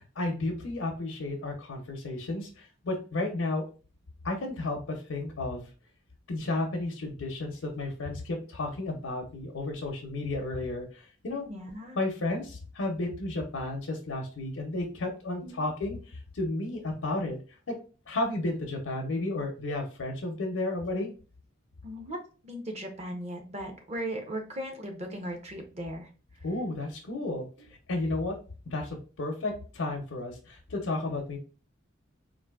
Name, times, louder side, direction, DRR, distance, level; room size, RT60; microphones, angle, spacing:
voice 1, 0.2-3.6 4.2-5.7 6.3-11.5 12.0-17.4 17.7-17.8 18.1-21.1 26.4-27.5 27.9-28.4 28.7-31.4, left 2 dB, 90° left, 2 dB, 0.6 m, -32 dB
voice 2, 11.5-12.0 15.4-15.7 21.8-26.1 26.4-26.6, equal, 30° right, 4 dB, 0.6 m, -38 dB
3.8 x 2.5 x 2.3 m, 0.36 s
head